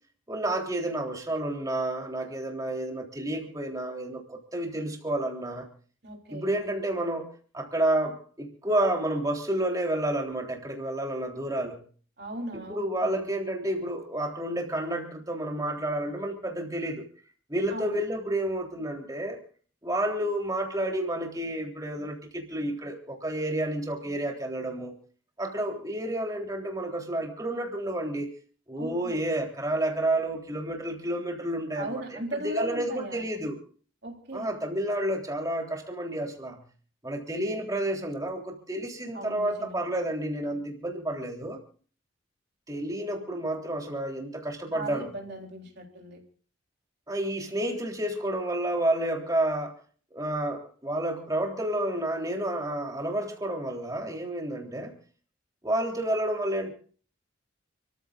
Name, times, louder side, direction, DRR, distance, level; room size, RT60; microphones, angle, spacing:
voice 1, 0.3-5.7 6.3-11.8 12.5-17.0 17.5-19.4 19.8-25.0 25.4-28.3 28.7-32.2 32.4-33.6 34.3-36.6 37.0-41.6 42.7-45.1 47.1-49.7 50.1-55.0 55.6-56.7, right 1 dB, 20° right, 1 dB, 3.6 m, -30 dB
voice 2, 6.0-6.5 12.2-13.3 17.7-18.0 28.8-29.2 31.8-33.2 34.0-34.6 39.1-39.8 44.7-46.2, right 1 dB, 55° right, 1 dB, 3.6 m, -37 dB
29.5 x 14.5 x 2.5 m, 0.43 s
head